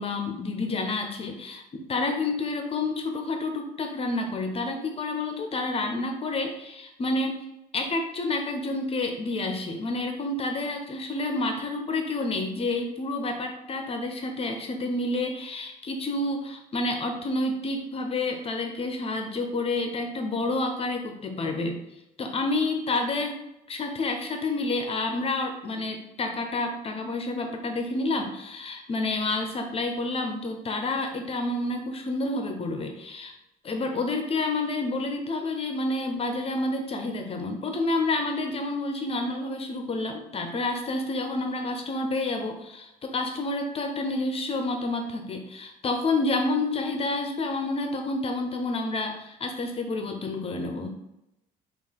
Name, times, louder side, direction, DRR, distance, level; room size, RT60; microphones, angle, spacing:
voice 1, 0.0-7.4 7.7-21.8 22.2-23.4 23.7-33.3 33.6-51.0, left 2 dB, 35° left, 4 dB, 0.6 m, -29 dB
5.4 x 2.4 x 3.4 m, 0.88 s
cardioid pair, 110°, 17 cm